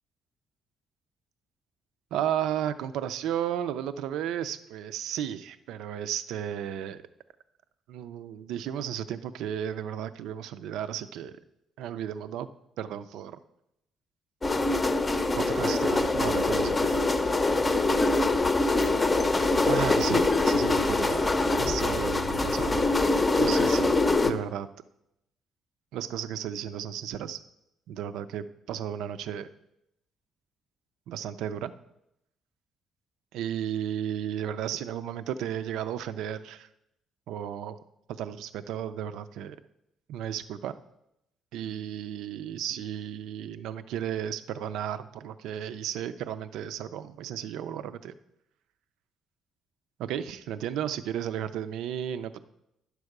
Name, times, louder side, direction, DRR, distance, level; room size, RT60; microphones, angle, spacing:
voice 1, 2.1-7.0 7.9-11.4 11.8-12.5 12.8-13.4 15.4-17.0 19.6-21.3 21.6-24.7 25.9-27.4 27.9-29.5 31.1-31.7 33.3-36.7 37.3-37.8 38.1-39.6 40.1-40.8 41.5-48.1 50.0-52.4, right 10 dB, 85° right, 12 dB, 0.5 m, -34 dB
sound 1, 14.4-24.3, left 2 dB, 20° left, 0.6 m, -24 dB
10.5 x 4.8 x 6.6 m, 0.83 s
cardioid pair, 120°, 0 cm